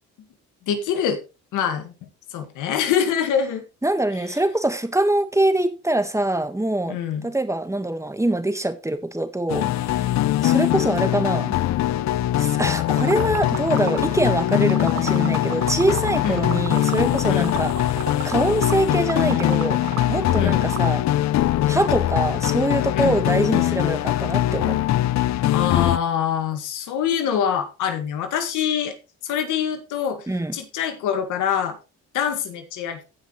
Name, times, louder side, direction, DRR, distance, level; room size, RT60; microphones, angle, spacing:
voice 1, 0.7-1.2 1.5-3.6 6.9-7.2 16.2-16.4 17.3-17.5 20.3-20.6 22.9-23.2 25.5-28.9 29.2-30.3 30.5-31.8 32.1-33.0, left 8 dB, 90° left, 2.0 m, -24 dB
voice 2, 3.8-7.0 7.2-10.1 10.4-11.6 12.4-18.0 18.2-19.8 20.1-21.0 21.7-24.8 30.3-30.5, right 1 dB, 10° right, 1.6 m, -24 dB
sound 1, 9.5-26.0, left 13 dB, 65° left, 0.6 m, -22 dB
Liquid, 13.0-21.0, right 9 dB, 65° right, 1.5 m, -33 dB
16.5 x 5.9 x 3.2 m
cardioid pair, 90°, 30 cm